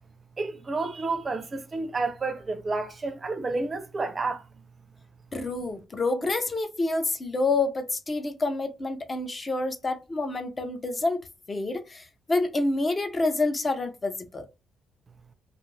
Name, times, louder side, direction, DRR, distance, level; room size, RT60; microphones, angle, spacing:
voice 1, 0.4-4.4, right 3 dB, 30° right, 0.5 m, -30 dB
voice 2, 5.3-11.2 11.5-14.5, left 2 dB, 30° left, 0.6 m, -28 dB
2.5 x 2.5 x 3.1 m
cardioid pair, 90°, 0 cm